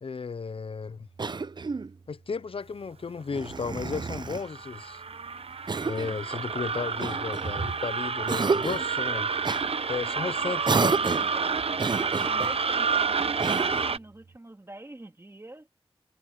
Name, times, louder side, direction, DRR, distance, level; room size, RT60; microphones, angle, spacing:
voice 1, 0.0-1.1 2.1-5.0 5.8-9.3 9.9-10.9, left 5 dB, 65° left, 0.5 m, -34 dB
Cough, 1.2-1.9 3.3-4.5 5.7-6.2 7.0-7.8 8.3-8.9 9.4-9.6 10.6-11.4 11.8-12.6 13.4-14.0, right 4 dB, 45° right, 0.5 m, -30 dB
sound 1, 4.0-14.0, right 5 dB, 70° right, 0.8 m, -29 dB
voice 2, 6.9-7.5 10.0-11.6 12.2-15.7, right 1 dB, 25° right, 2.4 m, -45 dB
wide cardioid pair, 80°, 10 cm